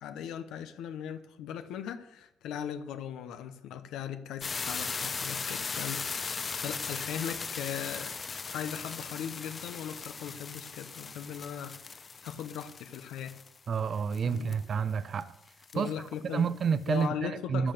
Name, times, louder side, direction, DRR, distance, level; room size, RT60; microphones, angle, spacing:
voice 1, 0.0-8.2 8.5-13.4 14.2-14.5 15.7-16.5 16.9-17.7, left 9 dB, 90° left, 0.9 m, -39 dB
sound 1, 4.4-14.6 15.2-15.3 15.5-15.9, left 5 dB, 35° left, 0.7 m, -38 dB
voice 2, 13.7-15.3 15.7-17.7, right 6 dB, 50° right, 0.6 m, -30 dB
13.5 x 8.7 x 6.8 m
cardioid pair, 90°, 0 cm